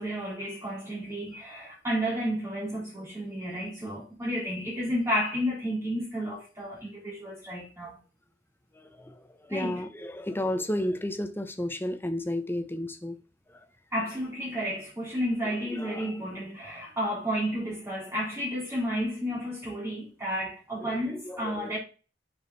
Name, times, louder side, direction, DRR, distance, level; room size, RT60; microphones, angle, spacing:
voice 1, 0.0-8.0 9.5-9.8 13.9-21.8, equal, 15° right, 3.9 m, -32 dB
voice 2, 8.7-13.2 15.5-16.1 20.8-21.7, left 1 dB, 10° left, 0.8 m, -33 dB
6.4 x 5.2 x 4.1 m
head